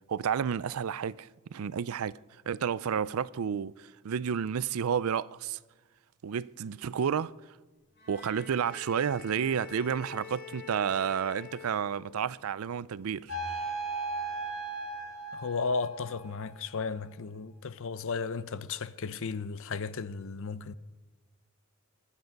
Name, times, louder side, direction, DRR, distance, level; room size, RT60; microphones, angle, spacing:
voice 1, 0.1-2.2 2.5-5.6 6.2-7.3 8.1-13.4, right 7 dB, 75° right, 0.4 m, -31 dB
Bowed string instrument, 8.0-12.4, left 8 dB, 50° left, 4.0 m, -47 dB
sound 1, 13.3-16.5, right 3 dB, 90° left, 5.4 m, -36 dB
voice 2, 15.3-20.7, left 4 dB, 65° left, 0.6 m, -34 dB
23.5 x 10.0 x 5.3 m
head